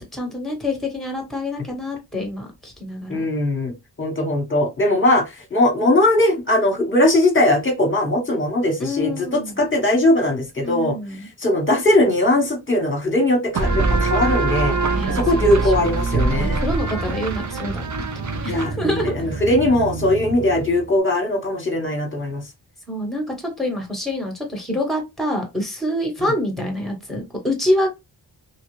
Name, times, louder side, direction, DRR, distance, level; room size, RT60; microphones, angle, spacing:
voice 1, 0.0-3.3 8.8-9.6 10.6-11.3 14.9-15.5 16.4-18.1 18.4-19.1 22.9-27.9, left 1 dB, ahead, 2 dB, 1.1 m, -26 dB
voice 2, 3.1-3.7 4.0-5.2 5.5-11.0 11.4-14.7 15.1-16.6 18.5-22.4 26.2-26.3, left 1 dB, 25° left, 3 dB, 1.0 m, -19 dB
sound 1, 13.5-20.9, right 3 dB, 40° right, 0.5 m, -24 dB
2.9 x 2.3 x 3.1 m, 0.23 s
wide cardioid pair, 105°, 46 cm